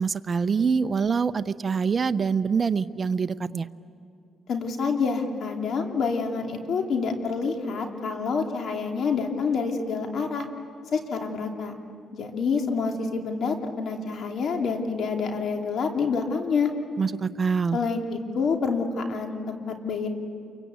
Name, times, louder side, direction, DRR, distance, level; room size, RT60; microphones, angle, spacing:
voice 1, 0.0-3.7 17.0-17.8, right 5 dB, 35° right, 11 dB, 0.7 m, -25 dB
voice 2, 4.5-10.5 10.9-11.8 12.1-16.7 17.7-20.1, left 5 dB, 65° left, 3 dB, 2.9 m, -27 dB
28.0 x 23.5 x 8.3 m, 2.4 s
cardioid pair, 90°, 0 cm